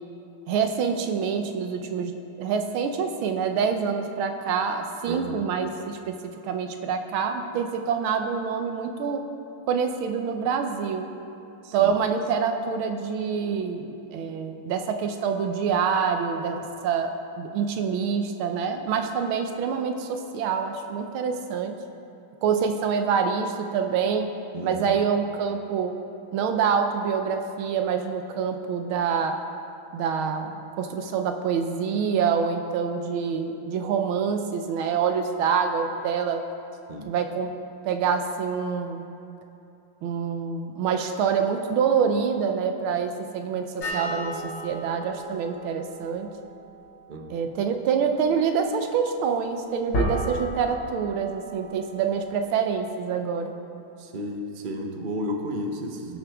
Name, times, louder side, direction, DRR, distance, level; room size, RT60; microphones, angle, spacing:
voice 1, 0.5-9.2 9.7-11.1 11.7-21.7 22.4-24.3 24.6-26.0 26.3-29.4 29.9-36.4 37.1-37.5 37.8-39.1 40.0-46.3 47.3-53.5, right 6 dB, 80° right, 6 dB, 1.6 m, -26 dB
voice 2, 5.1-5.4 11.6-11.9 24.5-25.0 36.9-37.1 47.1-47.5 54.0-56.2, equal, 50° right, 3 dB, 0.6 m, -33 dB
sound 1, 43.8-52.7, equal, 85° left, 2.8 m, -35 dB
19.0 x 6.5 x 3.5 m, 2.9 s
omnidirectional pair, 2.3 m